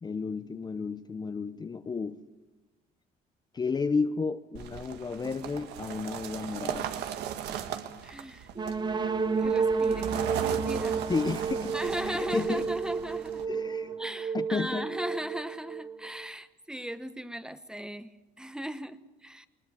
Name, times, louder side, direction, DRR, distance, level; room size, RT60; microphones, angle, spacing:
voice 1, 0.0-2.2 3.5-6.9 11.1-11.8 12.1-12.7 13.5-14.0 14.3-14.9, left 4 dB, 25° left, 11 dB, 0.8 m, -32 dB
sound 1, 4.5-13.4, right 9 dB, 85° right, 1.6 m, -38 dB
voice 2, 8.0-8.5 9.4-11.1 11.7-13.5 14.0-19.5, equal, 5° right, 12 dB, 1.0 m, -38 dB
sound 2, 8.6-16.3, right 5 dB, 25° right, 1.2 m, -31 dB
20.5 x 20.0 x 8.6 m, 1.1 s
cardioid pair, 110°, 17 cm